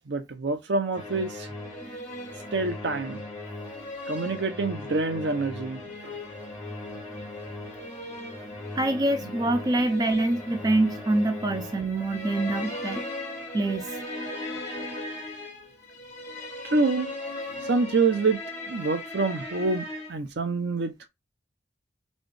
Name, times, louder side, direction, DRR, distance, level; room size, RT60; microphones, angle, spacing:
voice 1, 0.1-1.5 2.5-3.2 4.1-6.1 16.6-17.1 17.7-18.4 18.7-21.1, right 3 dB, 70° right, 0.6 m, -26 dB
sound 1, 0.9-20.1, left 2 dB, 15° left, 1.7 m, -38 dB
voice 2, 8.8-13.0 13.5-14.0, right 2 dB, 20° right, 0.3 m, -25 dB
4.1 x 2.4 x 3.2 m
head